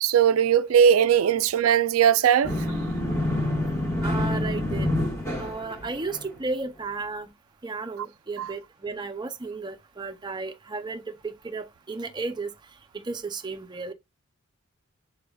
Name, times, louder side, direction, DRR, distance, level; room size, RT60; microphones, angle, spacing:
voice 1, 0.0-2.5 8.4-8.5, right 8 dB, 85° right, 0.4 m, -19 dB
sound 1, 2.4-6.3, left 1 dB, 15° left, 1.3 m, -27 dB
voice 2, 4.0-4.9 5.4-7.3 7.6-12.5 13.0-13.9, right 3 dB, 20° right, 0.5 m, -33 dB
6.9 x 3.4 x 2.3 m
head